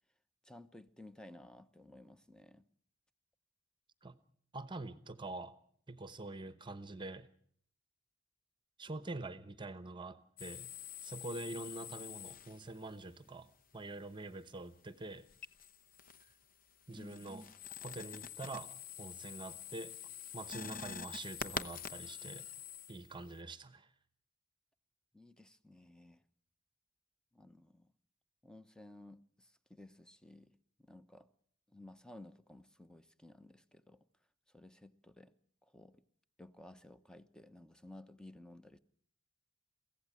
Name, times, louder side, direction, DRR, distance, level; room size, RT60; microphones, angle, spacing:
voice 1, 0.4-2.7 11.5-11.7 16.9-17.4 25.1-26.2 27.3-27.9 28.4-31.3 31.7-34.0 34.5-35.3 35.6-36.0 36.4-38.8, left 1 dB, 5° left, 0.9 m, -56 dB
voice 2, 4.5-5.5 5.9-7.3 8.8-10.7 11.0-15.2 16.9-17.5 17.8-19.9 20.3-22.5 22.9-23.9, right 2 dB, 25° right, 1.0 m, -45 dB
sound 1, 10.4-12.9 15.3-16.3 16.7-23.4, left 7 dB, 45° left, 0.9 m, -46 dB
23.5 x 16.0 x 8.9 m
head